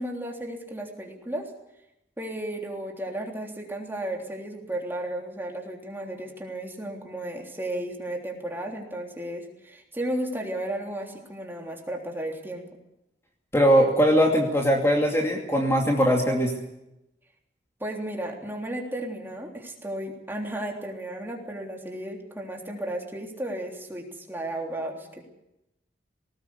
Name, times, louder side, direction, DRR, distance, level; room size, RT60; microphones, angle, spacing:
voice 1, 0.0-1.5 2.2-12.7 17.8-25.2, right 1 dB, 15° right, 0 dB, 3.4 m, -34 dB
voice 2, 13.5-16.5, equal, 15° left, 1 dB, 2.6 m, -21 dB
20.0 x 19.0 x 8.3 m, 0.88 s
head